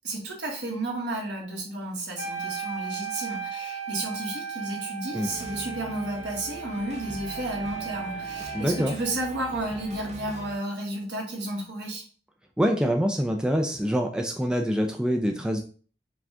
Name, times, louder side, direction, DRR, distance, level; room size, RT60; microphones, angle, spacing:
voice 1, 0.0-12.0, right 1 dB, 75° right, -1 dB, 1.4 m, -32 dB
Wind instrument woodwind instrument, 2.2-9.1, right 6 dB, 80° left, 0.8 m, -36 dB
sound 1, 5.2-10.6, equal, 40° right, 0.6 m, -42 dB
voice 2, 8.5-8.9 12.6-15.6, equal, 5° right, 3 dB, 0.3 m, -25 dB
4.8 x 2.4 x 3.5 m, 0.40 s
head